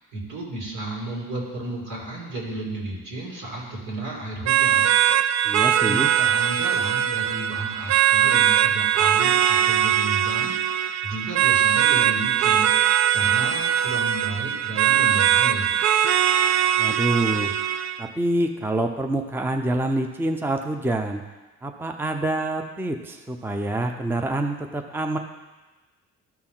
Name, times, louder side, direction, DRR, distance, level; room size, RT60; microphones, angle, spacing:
voice 1, 0.0-4.9 5.8-12.7 13.1-15.7, right 2 dB, 80° right, -3 dB, 2.6 m, -33 dB
sound 1, 4.5-18.0, right 10 dB, 60° right, 0.5 m, -21 dB
voice 2, 5.4-6.1 16.8-17.5 18.0-21.2 21.6-25.2, right 2 dB, 5° right, 4 dB, 0.6 m, -26 dB
13.0 x 4.4 x 3.7 m, 1.2 s
cardioid pair, 90°, 30 cm